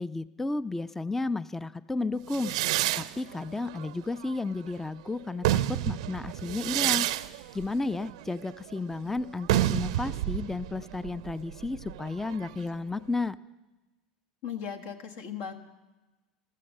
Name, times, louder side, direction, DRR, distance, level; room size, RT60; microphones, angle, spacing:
voice 1, 0.0-2.5 2.9-7.1 7.5-13.4, left 3 dB, 10° left, 17 dB, 0.4 m, -32 dB
sound 1, 2.3-4.8 5.2-12.7, right 14 dB, 75° right, 0.5 m, -30 dB
voice 2, 14.4-15.5, left 8 dB, 70° left, 4 dB, 1.5 m, -37 dB
14.0 x 13.5 x 6.5 m, 1.1 s
hypercardioid pair, 85°, 3 cm